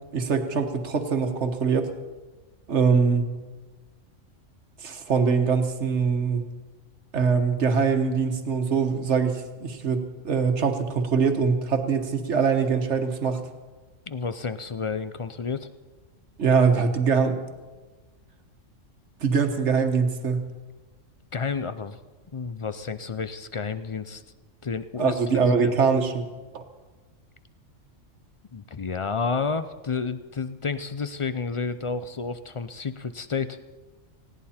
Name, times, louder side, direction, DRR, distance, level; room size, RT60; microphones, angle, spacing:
voice 1, 0.1-1.9 2.7-3.3 4.8-6.4 7.1-13.4 16.4-17.4 19.2-20.5 25.0-26.3 26.5-26.6, right 5 dB, 65° right, 7 dB, 1.6 m, -23 dB
voice 2, 14.1-15.7 21.3-22.0 22.3-24.2 24.6-25.2 25.5-25.8 28.5-33.6, left 5 dB, 50° left, 12 dB, 0.4 m, -30 dB
19.5 x 16.5 x 4.3 m, 1.3 s
omnidirectional pair, 1.3 m